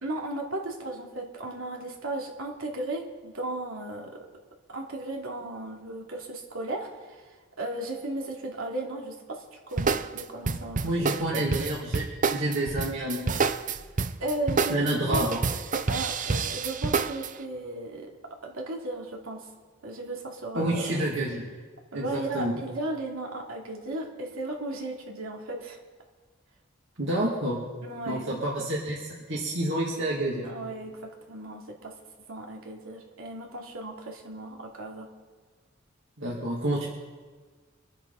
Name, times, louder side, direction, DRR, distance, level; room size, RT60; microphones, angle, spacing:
voice 1, 0.0-4.1 4.7-7.3 7.6-10.8 11.3-11.4 14.2-15.3 15.9-18.1 18.4-19.5 19.8-20.9 21.9-25.8 27.8-28.3 30.4-31.0 31.3-31.9 32.3-35.1, right 2 dB, 90° right, -1 dB, 2.7 m, -35 dB
sound 1, 9.8-17.3, right 4 dB, 40° right, 0.6 m, -28 dB
voice 2, 10.8-13.4 14.7-15.4 20.5-21.4 21.9-22.5 27.0-27.6 28.1-30.5 36.2-36.9, right 1 dB, 65° right, -4 dB, 2.5 m, -29 dB
25.0 x 10.0 x 4.1 m, 1.4 s
head